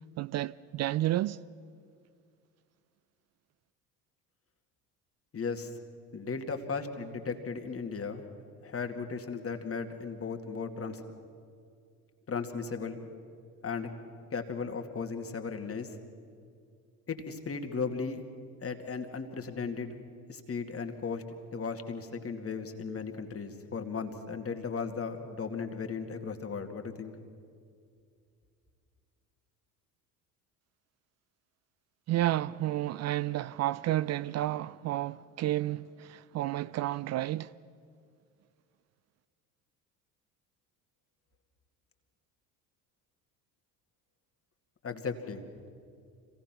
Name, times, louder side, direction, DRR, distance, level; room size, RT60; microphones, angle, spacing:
voice 1, 0.2-1.4 32.1-37.5, right 14 dB, 35° right, 0.4 m, -31 dB
voice 2, 5.3-5.7 6.1-8.2 8.6-11.0 12.3-13.0 13.6-13.9 14.3-15.9 17.1-18.2 18.6-20.0 20.3-21.2 21.5-27.1 44.8-45.4, left 5 dB, 30° left, 2.2 m, -36 dB
26.0 x 17.5 x 6.0 m
hypercardioid pair, 60°, 46 cm